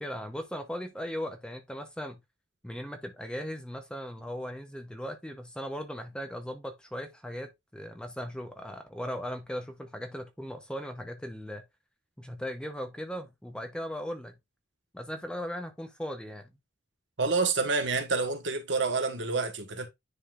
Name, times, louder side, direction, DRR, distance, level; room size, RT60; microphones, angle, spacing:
voice 1, 0.0-2.2 2.6-11.6 12.2-14.4 14.9-16.5, equal, 5° left, 0.8 m, -38 dB
voice 2, 17.2-19.9, right 4 dB, 80° right, 1.4 m, -28 dB
9.9 x 3.9 x 2.4 m
head